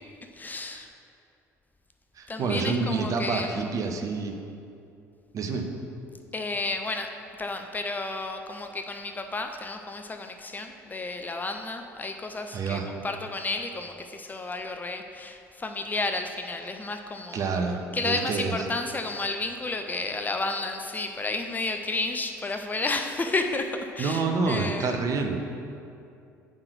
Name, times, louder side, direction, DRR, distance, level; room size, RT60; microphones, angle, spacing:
voice 1, 0.2-0.9 2.3-3.7 6.3-17.5 17.9-25.0, left 3 dB, 20° left, 5 dB, 0.5 m, -32 dB
voice 2, 2.2-4.4 5.3-5.7 12.5-12.9 17.3-18.5 24.0-25.4, right 4 dB, 40° right, 4 dB, 0.9 m, -28 dB
8.8 x 3.8 x 6.5 m, 2.5 s
figure-of-eight pair, 55°, 9 cm